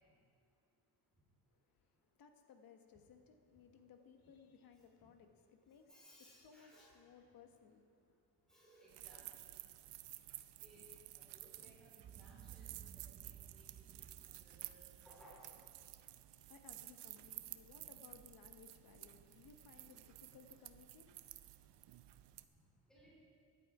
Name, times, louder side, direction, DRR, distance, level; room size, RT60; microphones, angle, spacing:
voice 1, 1.5-6.0 6.4-8.2 15.9-21.5, left 6 dB, 50° left, 6 dB, 1.3 m, -62 dB
voice 2, 5.9-7.0 8.5-9.6 10.6-10.9 11.1-13.8 14.2-15.5 22.9-23.2, equal, ahead, -7 dB, 3.9 m, -64 dB
sound 1, 8.9-22.4, right 15 dB, 65° right, 0.7 m, -54 dB
Boom, 12.0-16.3, right 9 dB, 30° right, 0.5 m, -58 dB
16.5 x 11.5 x 4.9 m, 2.4 s
cardioid pair, 160°, 44 cm